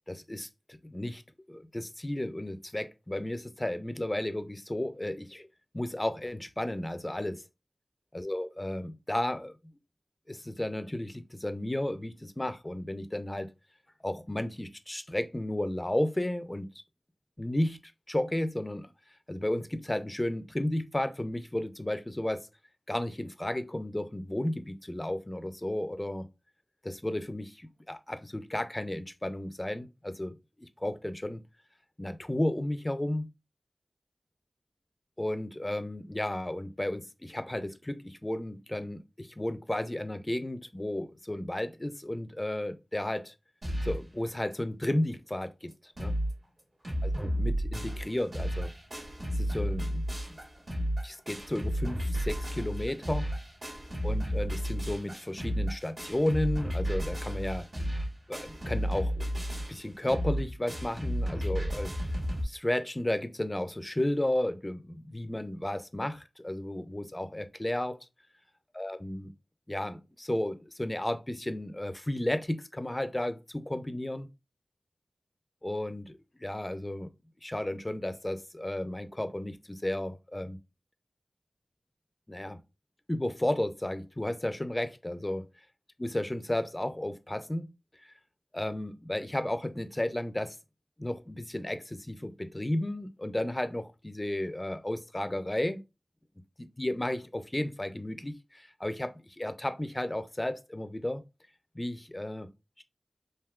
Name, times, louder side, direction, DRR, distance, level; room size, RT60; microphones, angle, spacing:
voice 1, 0.1-1.2 1.5-5.5 5.7-7.4 8.1-9.5 10.3-13.5 14.0-16.7 17.4-17.8 18.1-18.9 19.3-22.5 22.9-26.3 26.8-30.4 30.8-31.5 32.0-33.3 35.2-43.3 43.8-46.1 47.0-48.7 49.3-50.4 51.0-53.3 54.0-57.7 58.3-59.3 59.7-61.9 62.4-68.0 68.7-69.3 69.7-74.3 75.6-76.1 76.4-77.1 77.4-80.6 82.3-82.6 83.1-85.4 86.0-87.7 88.0-88.1 88.5-90.6 91.0-95.8 96.8-101.2 101.7-102.5 102.8-102.9, left 1 dB, 25° left, 0.4 m, -33 dB
sound 1, 43.6-44.1 44.5-44.6 44.8-44.9 45.4-45.5 45.7-46.3 46.6-62.4, equal, 55° right, 1.6 m, -32 dB
3.5 x 2.6 x 2.3 m
cardioid pair, 45°, 0 cm